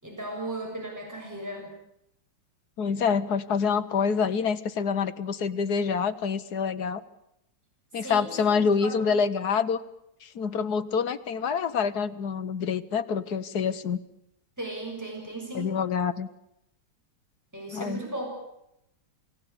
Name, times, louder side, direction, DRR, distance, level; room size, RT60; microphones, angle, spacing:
voice 1, 0.0-1.8 8.0-9.2 14.6-15.7 17.5-18.3, right 2 dB, 10° right, 0 dB, 7.0 m, -36 dB
voice 2, 2.8-7.0 7.9-9.8 10.2-14.0 15.5-16.3 17.7-18.0, left 6 dB, 55° left, 11 dB, 1.6 m, -26 dB
28.5 x 18.0 x 8.7 m, 0.82 s
omnidirectional pair, 2.1 m